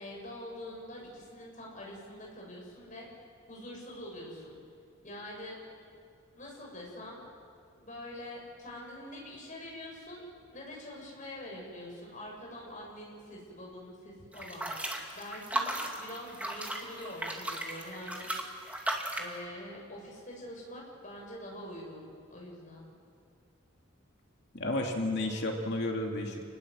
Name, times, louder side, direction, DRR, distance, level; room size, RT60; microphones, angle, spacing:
voice 1, 0.0-3.1 3.5-4.6 5.0-5.6 6.4-7.2 7.8-10.2 10.5-14.9 15.1-18.3 19.2-22.9, left 1 dB, 35° left, -2 dB, 7.1 m, -45 dB
sound 1, 14.3-19.3, right 1 dB, 5° right, 2.3 m, -36 dB
voice 2, 24.6-26.4, left 1 dB, 55° left, 2 dB, 2.6 m, -32 dB
29.0 x 20.0 x 7.9 m, 2.3 s
head